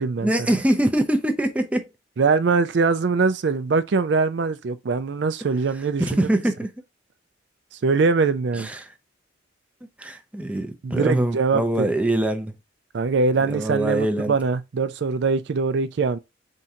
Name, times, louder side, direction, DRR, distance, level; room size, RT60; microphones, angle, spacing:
voice 1, 0.2-1.9 6.1-6.7 8.6-8.9 10.0-12.5 13.5-14.3, right 1 dB, 5° right, 0.5 m, -23 dB
voice 2, 2.2-6.3 7.8-8.7 10.8-11.9 12.9-16.2, right 4 dB, 60° right, 0.4 m, -22 dB
4.4 x 3.7 x 2.7 m
head